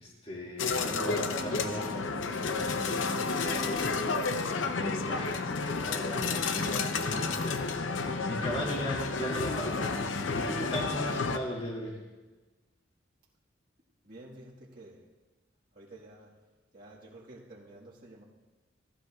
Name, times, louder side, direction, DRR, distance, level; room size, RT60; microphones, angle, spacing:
voice 1, 0.0-12.0, equal, 30° left, -4 dB, 2.4 m, -38 dB
sound 1, 0.6-11.4, left 4 dB, 80° left, 0.7 m, -31 dB
voice 2, 14.0-15.0 15.7-16.4 16.7-18.2, right 1 dB, 45° right, -7 dB, 1.7 m, -50 dB
15.5 x 15.0 x 2.4 m, 1.2 s
head